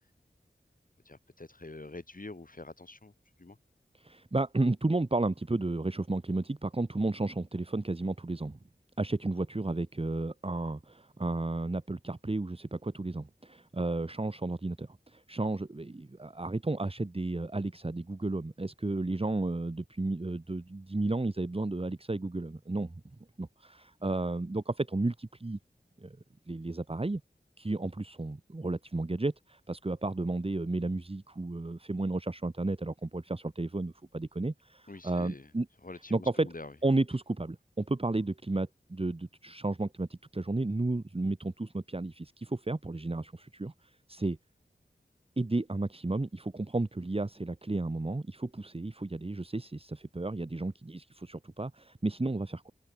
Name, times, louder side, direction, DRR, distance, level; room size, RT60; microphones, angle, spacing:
voice 1, 1.0-3.1 3.4-3.6 34.9-35.5 35.8-36.7, left 2 dB, 50° left, 6.2 m, -46 dB
voice 2, 3.9-8.6 9.0-22.9 23.4-25.6 26.0-26.2 26.5-27.2 27.6-35.7 36.1-36.5 36.8-44.4 45.4-52.7, right 2 dB, 30° right, 1.5 m, -33 dB
open air
wide cardioid pair, 55°, 18 cm